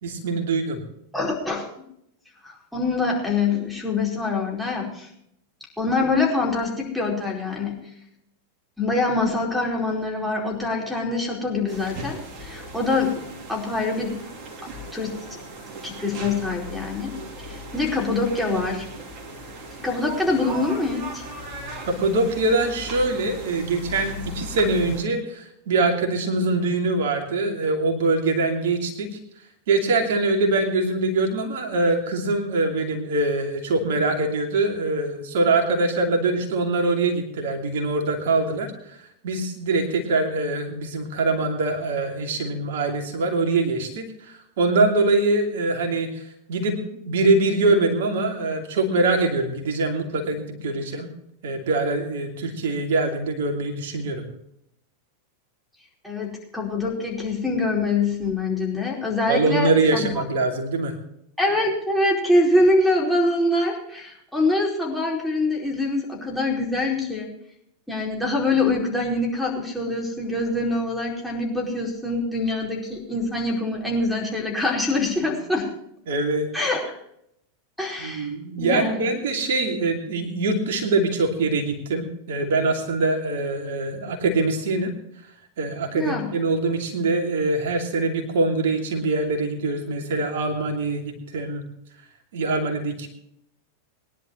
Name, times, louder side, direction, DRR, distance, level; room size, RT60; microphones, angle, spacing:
voice 1, 0.0-0.8 21.9-29.1 29.7-39.0 39.2-51.1 51.4-54.2 59.3-60.9 76.1-76.5 78.0-84.9 85.6-91.6 92.3-93.1, right 2 dB, 55° right, 3 dB, 2.7 m, -23 dB
voice 2, 1.1-1.7 2.4-5.1 5.8-7.8 8.8-14.2 14.9-15.1 15.8-17.1 17.4-18.8 19.8-21.2 56.0-60.1 61.4-67.3 67.9-75.7 76.5-76.9 77.8-78.3 78.6-79.1 85.9-86.3, left 2 dB, ahead, -4 dB, 4.6 m, -24 dB
sound 1, 11.7-25.0, equal, 35° right, 3.1 m, -37 dB
22.0 x 11.0 x 3.2 m, 0.74 s
figure-of-eight pair, 90°, 0 cm